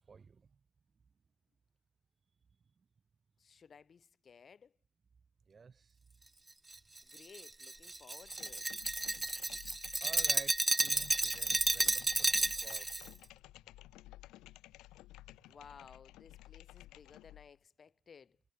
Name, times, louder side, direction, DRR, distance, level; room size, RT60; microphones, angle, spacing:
voice 1, 0.1-0.5 5.5-6.0 10.0-13.2, right 5 dB, 30° right, 2.6 m, -53 dB
voice 2, 3.4-4.7 7.0-8.7 15.5-18.4, left 6 dB, 40° left, 2.5 m, -57 dB
Glass, 6.7-13.1, right 2 dB, 15° right, 0.6 m, -32 dB
sound 1, 8.2-17.5, left 17 dB, 90° left, 4.5 m, -55 dB
cardioid pair, 115°, 0 cm